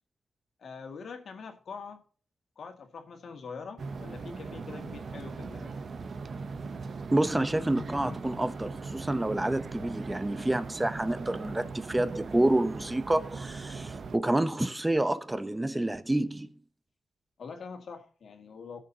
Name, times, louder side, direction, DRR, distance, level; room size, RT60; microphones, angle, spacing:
voice 1, 0.6-2.0 2.6-5.7 7.7-8.2 17.4-18.8, left 5 dB, 65° left, 2.0 m, -43 dB
sound 1, 3.8-14.2, right 4 dB, 55° right, 0.8 m, -40 dB
voice 2, 7.1-16.6, right 1 dB, 15° right, 0.7 m, -28 dB
18.0 x 6.5 x 2.8 m
wide cardioid pair, 110°, 0 cm